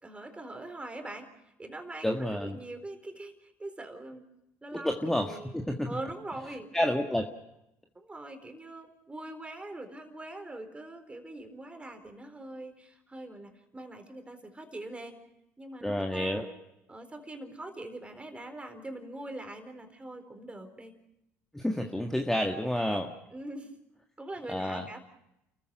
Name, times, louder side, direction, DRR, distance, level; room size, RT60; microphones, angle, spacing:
voice 1, 0.0-1.3 1.6-4.3 4.6-5.6 5.8-6.7 7.9-15.2 15.6-16.5 16.9-20.9 23.3-23.8 24.2-25.0, right 2 dB, 15° right, 7 dB, 4.2 m, -43 dB
voice 2, 2.0-2.6 4.7-5.9 6.7-7.3 15.8-16.5 21.5-23.1 24.5-24.9, left 1 dB, 5° left, 2 dB, 1.8 m, -29 dB
30.0 x 14.5 x 6.5 m, 0.84 s
hypercardioid pair, 70°, 7 cm